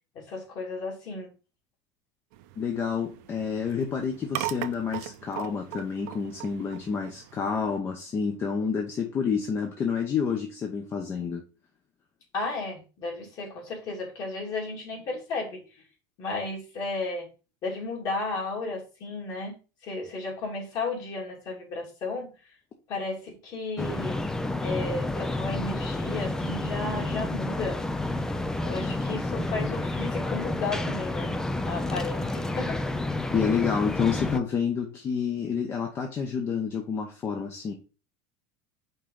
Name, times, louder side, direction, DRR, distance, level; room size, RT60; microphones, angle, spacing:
voice 1, 0.1-1.3 12.3-15.8 16.2-17.3 17.6-19.5 19.8-22.3 22.9-24.2 24.6-27.8 28.2-28.3 28.6-31.3 31.7-32.8, left 3 dB, 40° left, 2.6 m, -34 dB
sound 1, 2.3-7.8, right 14 dB, 65° right, 0.7 m, -39 dB
voice 2, 2.6-11.4 33.3-37.7, left 6 dB, 25° left, 0.8 m, -29 dB
sound 2, 23.8-34.4, left 2 dB, 5° left, 0.3 m, -30 dB
5.5 x 3.7 x 5.4 m
supercardioid pair, 160°, 10 cm